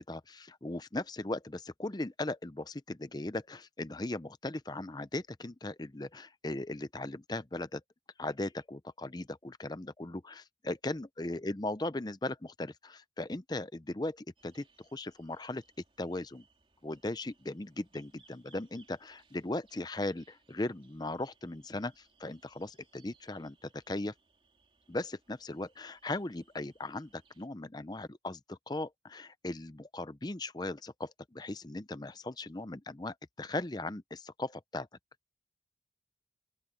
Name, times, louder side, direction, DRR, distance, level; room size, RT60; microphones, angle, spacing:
voice 1, 0.0-7.8 8.2-15.6 16.0-16.4 16.8-24.1 24.9-34.9, left 2 dB, 20° left, 0.6 m, -38 dB
sound 1, 14.4-27.5, right 4 dB, 30° right, 3.4 m, -68 dB
open air
head